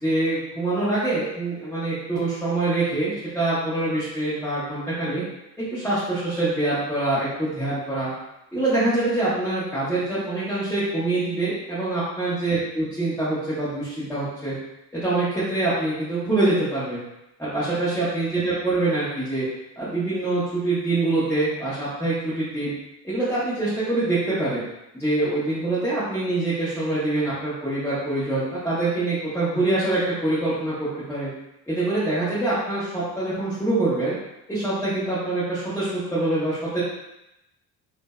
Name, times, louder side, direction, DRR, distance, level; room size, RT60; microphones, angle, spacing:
voice 1, 0.0-5.2 5.6-8.1 8.5-14.5 14.9-17.0 17.4-19.5 19.8-22.7 23.0-24.6 24.9-31.3 31.7-34.1 34.5-36.8, right 2 dB, 5° left, -12 dB, 1.0 m, -25 dB
2.5 x 2.1 x 2.3 m, 0.88 s
hypercardioid pair, 60°, 46 cm